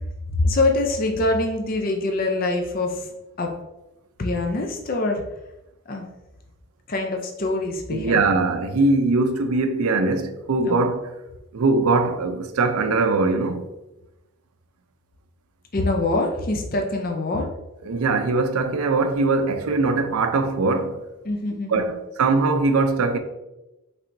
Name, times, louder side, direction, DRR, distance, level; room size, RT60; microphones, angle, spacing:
voice 1, 0.3-3.1 3.4-3.5 4.2-5.2 5.9-6.1 6.9-8.4 10.6-10.8 15.7-17.5 21.2-21.9, left 2 dB, 40° left, 0.5 m, -24 dB
voice 2, 7.9-11.0 11.5-13.6 17.8-21.0 21.7-23.2, right 3 dB, 80° right, 0.5 m, -21 dB
5.7 x 3.4 x 2.6 m
head